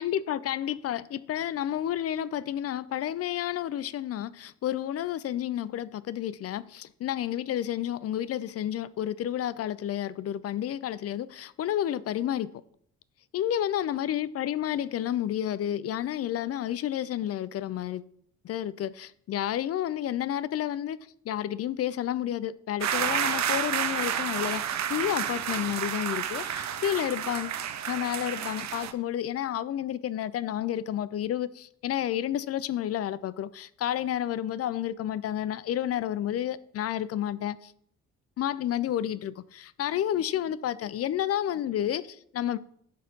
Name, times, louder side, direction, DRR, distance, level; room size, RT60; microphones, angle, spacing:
voice 1, 0.0-12.5 13.3-18.1 18.4-21.0 21.2-27.6 27.9-37.7 38.4-42.6, left 11 dB, 40° left, 0.4 m, -30 dB
sound 1, 22.8-28.9, right 9 dB, 40° right, 0.7 m, -30 dB
11.5 x 4.2 x 3.9 m
hypercardioid pair, 45°, 41 cm